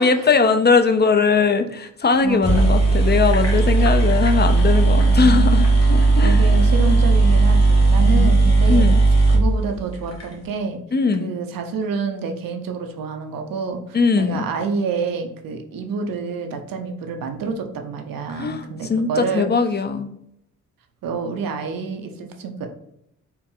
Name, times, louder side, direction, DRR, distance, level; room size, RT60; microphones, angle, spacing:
voice 1, 0.0-6.5 8.1-8.4 8.7-9.0 10.9-11.3 13.9-14.4 18.3-20.1, left 5 dB, 30° left, 7 dB, 0.4 m, -20 dB
sound 1, 2.1-2.2 2.4-10.3, right 3 dB, 50° left, 1.3 m, -16 dB
voice 2, 2.2-2.9 5.0-5.5 6.2-8.9 9.3-10.8 11.2-19.5 21.0-22.7, right 4 dB, 85° right, 4 dB, 0.6 m, -28 dB
4.3 x 2.0 x 3.7 m, 0.77 s
cardioid pair, 70°, 33 cm